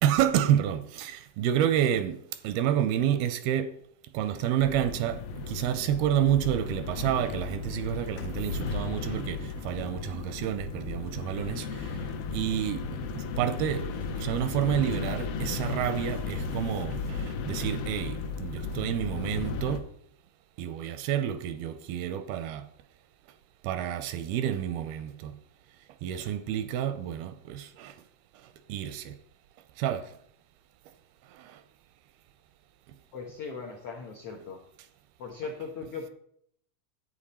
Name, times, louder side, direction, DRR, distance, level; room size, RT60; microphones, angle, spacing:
voice 1, 0.0-3.7 4.1-12.0 12.3-19.9 20.6-22.7 23.6-25.4 26.0-28.0 28.7-29.2 29.8-30.1 31.3-31.6, right 10 dB, 85° right, 2.4 m, -29 dB
sound 1, 4.6-19.8, left 4 dB, 75° left, 2.5 m, -35 dB
voice 2, 33.1-34.6 35.2-36.1, left 5 dB, 90° left, 1.3 m, -38 dB
11.0 x 8.5 x 4.2 m
omnidirectional pair, 4.6 m